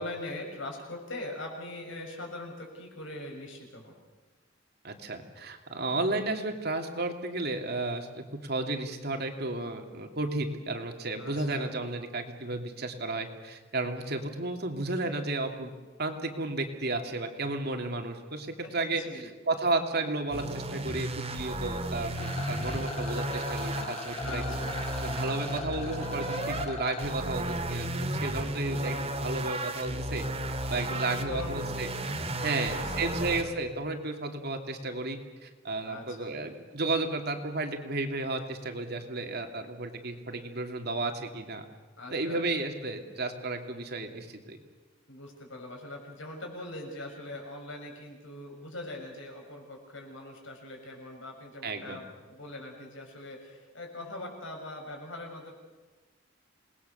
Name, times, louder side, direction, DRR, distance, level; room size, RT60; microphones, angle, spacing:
voice 1, 0.0-4.0 11.2-11.7 18.8-19.3 24.2-24.8 28.6-29.0 30.7-31.6 32.4-33.3 35.8-36.4 42.0-42.4 45.1-55.5, left 1 dB, 80° left, 1 dB, 6.7 m, -41 dB
voice 2, 4.8-15.7 16.0-19.0 19.5-24.6 25.0-30.2 30.7-31.9 32.4-41.6 42.1-44.6 51.6-52.0, right 2 dB, 55° right, 4 dB, 2.7 m, -33 dB
sound 1, 20.3-26.7 27.0-33.4, right 1 dB, 30° right, 2.4 m, -34 dB
Rattle, 22.1-27.1, left 2 dB, 35° left, 4.8 m, -39 dB
28.0 x 20.0 x 7.0 m, 1.3 s
head